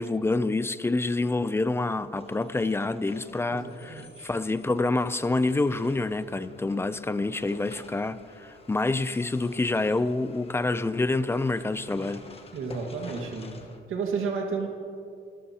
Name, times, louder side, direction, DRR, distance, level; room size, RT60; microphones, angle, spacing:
voice 1, 0.0-12.3, left 2 dB, 10° left, 14 dB, 0.3 m, -27 dB
sound 1, 0.9-13.8, left 3 dB, 30° left, 1.2 m, -50 dB
voice 2, 3.5-4.3 12.5-13.5 13.9-14.7, right 5 dB, 80° right, 1 dB, 1.7 m, -32 dB
26.0 x 13.5 x 2.9 m, 2.4 s
cardioid pair, 150°, 20 cm